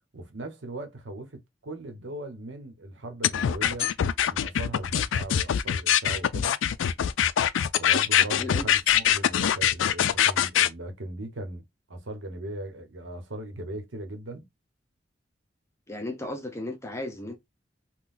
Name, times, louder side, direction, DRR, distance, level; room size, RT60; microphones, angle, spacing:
voice 1, 0.1-3.9 4.3-6.6 7.8-11.6 11.9-14.5, right 1 dB, 80° right, 1.0 m, -38 dB
sound 1, 3.2-10.7, left 10 dB, 85° left, 0.3 m, -23 dB
voice 2, 15.9-17.4, left 1 dB, 15° left, 0.5 m, -35 dB
3.8 x 2.2 x 2.5 m
head